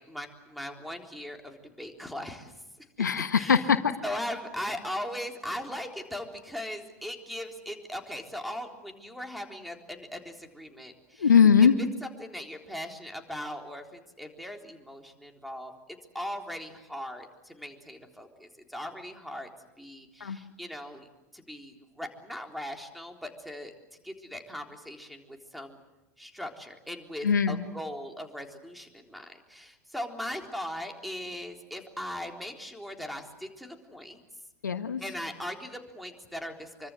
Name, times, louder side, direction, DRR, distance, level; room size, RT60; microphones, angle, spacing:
voice 1, 0.0-2.5 3.4-3.7 4.0-11.3 11.8-15.7 16.1-19.5 19.8-21.1 21.3-23.7 24.0-25.8 26.2-34.2 35.0-36.9, left 1 dB, ahead, 3 dB, 3.7 m, -39 dB
voice 2, 3.0-3.9 11.2-11.7 20.2-20.4 27.2-27.6 34.6-35.0, left 7 dB, 75° left, 10 dB, 1.4 m, -21 dB
25.5 x 24.5 x 7.7 m, 1.0 s
figure-of-eight pair, 90°, 10 cm